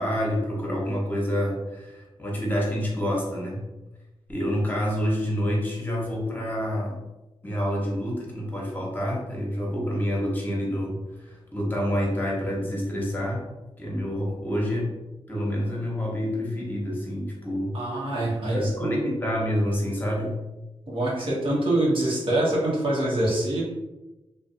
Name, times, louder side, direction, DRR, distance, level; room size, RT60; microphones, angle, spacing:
voice 1, 0.0-3.7 4.3-7.0 7.4-13.4 13.8-14.9 15.3-18.1 18.5-20.4, equal, 15° left, -3 dB, 0.9 m, -28 dB
voice 2, 17.7-19.1 20.9-23.6, right 1 dB, 55° right, -6 dB, 1.1 m, -25 dB
2.5 x 2.2 x 2.5 m, 1.0 s
cardioid pair, 60°, 11 cm